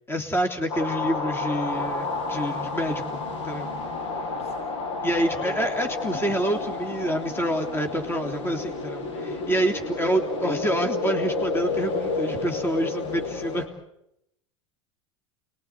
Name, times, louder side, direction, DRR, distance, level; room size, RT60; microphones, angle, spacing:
voice 1, 0.1-3.7 5.0-13.6, equal, 15° left, 4 dB, 3.2 m, -27 dB
sound 1, 0.7-13.7, left 3 dB, 75° left, 7.5 m, -30 dB
voice 2, 5.2-5.7 6.0-6.4 9.1-9.5, left 1 dB, 50° left, -1 dB, 7.3 m, -41 dB
29.0 x 21.5 x 8.4 m, 0.81 s
hypercardioid pair, 85°, 15 cm